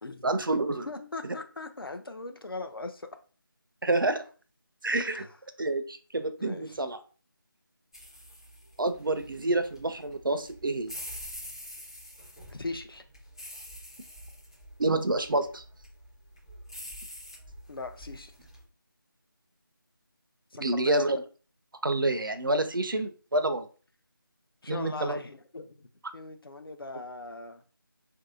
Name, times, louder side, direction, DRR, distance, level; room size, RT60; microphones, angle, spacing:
voice 1, 0.2-0.9 3.8-4.2 4.8-5.2 5.6-7.0 8.8-10.9 14.8-15.6 20.6-21.2 21.8-23.7 24.7-25.2, right 2 dB, 65° right, 0.5 m, -28 dB
voice 2, 0.9-3.1 5.0-5.3 6.4-6.8 12.5-13.0 17.7-18.3 20.5-21.0 24.6-25.9 26.1-27.6, left 3 dB, 80° left, 0.5 m, -39 dB
sound 1, 7.9-18.6, equal, 10° left, 0.5 m, -46 dB
2.8 x 2.6 x 2.5 m
figure-of-eight pair, 165°, 12 cm